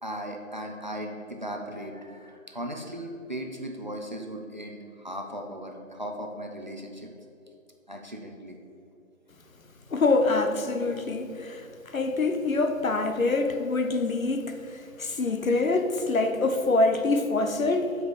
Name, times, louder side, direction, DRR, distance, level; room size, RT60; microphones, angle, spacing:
voice 1, 0.0-7.1 7.9-8.6 15.0-15.1 15.4-15.5, equal, 35° right, 0.5 m, -37 dB
voice 2, 9.9-18.0, left 3 dB, 75° left, 0.9 m, -25 dB
7.4 x 4.8 x 5.0 m
figure-of-eight pair, 155°, 41 cm